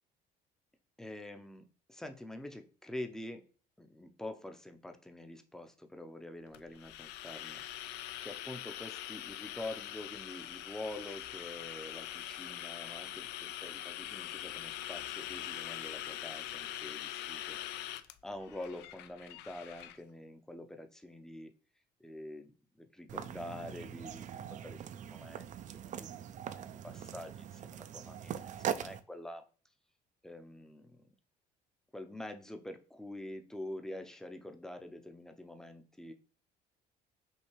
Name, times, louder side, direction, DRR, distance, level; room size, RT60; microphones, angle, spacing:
voice 1, 1.0-3.5 3.8-17.6 18.2-21.5 22.0-22.5 22.8-24.2 24.5-26.1 26.4-29.4 30.2-31.1 31.9-36.1, left 1 dB, 5° left, 6 dB, 0.5 m, -46 dB
sound 1, 6.5-20.0, left 13 dB, 85° left, 0.4 m, -43 dB
sound 2, 23.1-29.0, right 9 dB, 45° right, 0.4 m, -41 dB
5.4 x 2.8 x 3.1 m, 0.39 s
cardioid pair, 110°, 17 cm